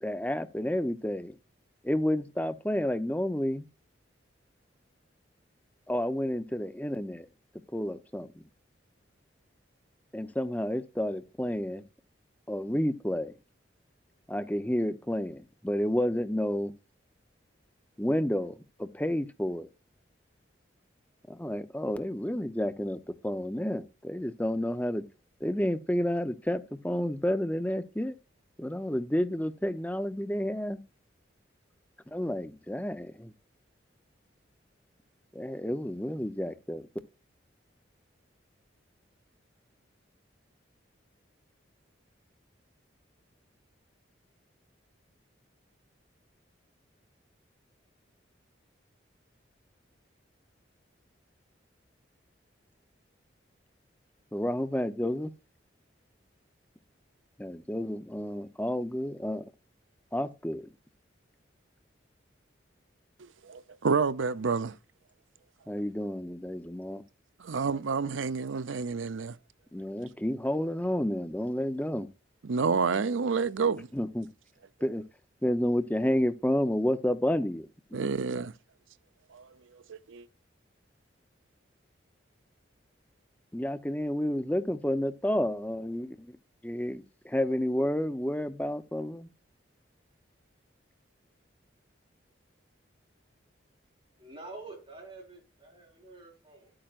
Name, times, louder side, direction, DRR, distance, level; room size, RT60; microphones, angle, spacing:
voice 1, 0.0-1.4 1.8-3.7 5.9-7.3 7.7-8.3 10.1-11.8 12.5-13.3 14.3-16.7 18.0-19.7 21.3-25.0 25.4-28.1 28.6-30.8 32.1-33.3 35.3-36.9 54.3-55.3 57.4-59.4 60.1-60.7 65.7-67.0 69.7-72.1 73.9-74.3 74.8-75.0 75.4-78.1 83.5-86.4 86.6-89.3, left 1 dB, 10° left, 0.7 m, -30 dB
voice 2, 63.2-64.8 67.4-69.4 72.4-73.9 77.9-78.5 79.3-79.5 79.7-80.3, right 5 dB, 90° right, 0.6 m, -29 dB
voice 3, 94.2-96.7, right 3 dB, 25° right, 4.7 m, -47 dB
11.5 x 8.8 x 2.5 m
head